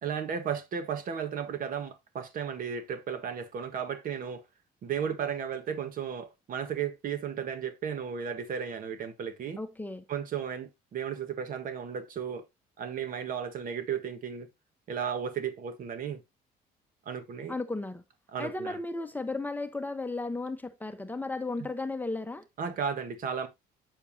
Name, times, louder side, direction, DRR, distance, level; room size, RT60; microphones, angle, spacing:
voice 1, 0.0-4.4 4.8-9.6 10.1-12.5 12.8-14.5 14.9-16.2 17.0-17.5 18.3-18.8 21.6-21.7 22.6-23.5, right 7 dB, 55° right, 1.6 m, -34 dB
voice 2, 9.6-10.0 17.5-18.0 18.4-22.4, left 2 dB, 10° left, 1.0 m, -34 dB
8.2 x 7.0 x 2.8 m
cardioid pair, 110°, 17 cm